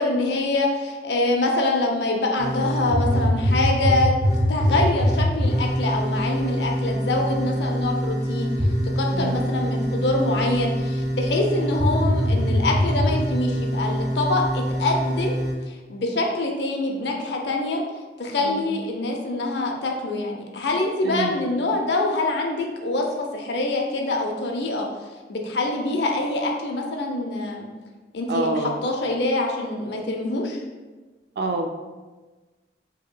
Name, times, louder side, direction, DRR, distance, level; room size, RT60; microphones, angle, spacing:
voice 1, 0.0-4.1 4.5-8.5 9.0-15.4 15.7-17.8 18.2-24.9 25.3-27.7 28.1-30.6, left 2 dB, 75° left, 1 dB, 0.6 m, -25 dB
sound 1, 2.4-15.5, equal, 20° right, 0.6 m, -24 dB
voice 2, 28.3-28.7 31.4-31.7, right 2 dB, 65° right, 5 dB, 0.4 m, -26 dB
5.0 x 2.8 x 2.2 m, 1.3 s
head